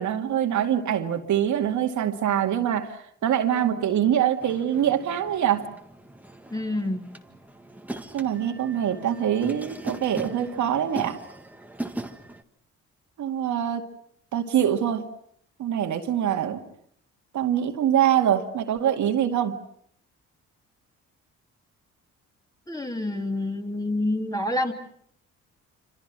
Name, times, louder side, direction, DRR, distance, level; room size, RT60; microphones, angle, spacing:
voice 1, 0.0-2.9 3.2-5.6 8.1-11.2 13.2-13.8 14.3-15.0 15.6-16.6 17.3-19.5, right 10 dB, 75° right, 4 dB, 2.3 m, -24 dB
sound 1, 4.4-12.4, right 1 dB, 5° right, 1.8 m, -39 dB
voice 2, 6.5-7.2 22.7-24.7, left 1 dB, 10° left, 4 dB, 3.2 m, -28 dB
27.0 x 26.0 x 6.1 m, 0.65 s
cardioid pair, 90°, 30 cm